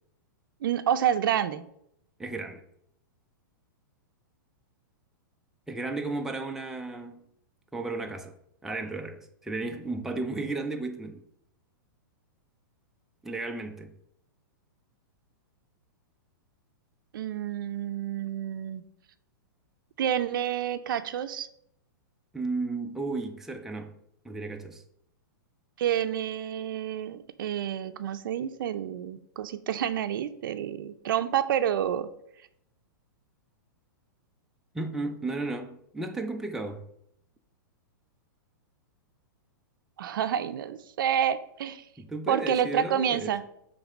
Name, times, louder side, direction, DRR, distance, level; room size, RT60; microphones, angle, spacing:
voice 1, 0.6-1.6 17.1-18.8 20.0-21.5 25.8-32.1 40.0-41.8 42.3-43.4, right 9 dB, 70° right, 0.5 m, -29 dB
voice 2, 2.2-2.6 5.7-7.2 7.7-8.3 8.6-11.2 13.2-13.9 22.3-23.9 24.2-24.8 34.7-36.9 42.0-43.3, right 3 dB, 5° right, 0.5 m, -34 dB
6.9 x 3.3 x 5.0 m
hypercardioid pair, 130°, 11 cm